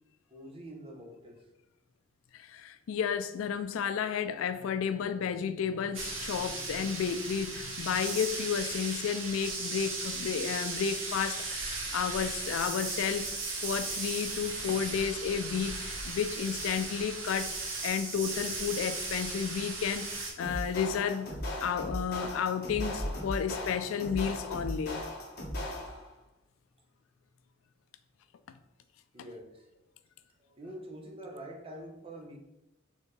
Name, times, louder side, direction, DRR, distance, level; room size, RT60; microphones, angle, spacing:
voice 1, 0.3-1.4 29.1-29.6 30.4-32.4, right 1 dB, 30° right, 0.8 m, -45 dB
voice 2, 2.3-17.5 17.8-21.3 21.6-25.0, left 7 dB, 90° left, 0.3 m, -32 dB
sound 1, 5.9-20.3, right 3 dB, 75° right, 0.9 m, -37 dB
sound 2, 20.4-26.1, left 1 dB, 55° left, 1.1 m, -37 dB
4.3 x 3.4 x 3.2 m
head